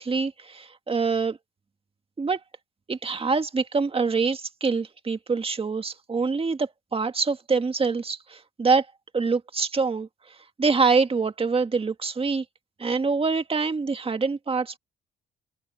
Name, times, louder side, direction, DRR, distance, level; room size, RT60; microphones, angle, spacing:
voice 1, 0.0-1.4 2.2-2.4 2.9-8.9 9.1-12.4 12.8-14.8, right 4 dB, 30° right, 1.9 m, -25 dB
cardioid pair, 90°, 20 cm